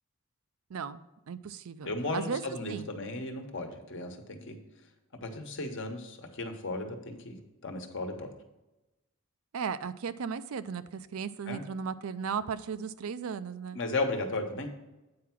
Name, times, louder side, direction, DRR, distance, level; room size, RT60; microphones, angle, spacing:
voice 1, 0.7-1.0 1.3-2.4 2.7-2.9 9.5-13.8, right 6 dB, 85° right, 13 dB, 0.4 m, -36 dB
voice 2, 1.8-4.6 5.2-7.4 7.6-8.3 11.5-11.6 13.7-14.7, left 2 dB, 60° left, 5 dB, 1.1 m, -35 dB
8.6 x 4.7 x 5.9 m, 1.0 s
head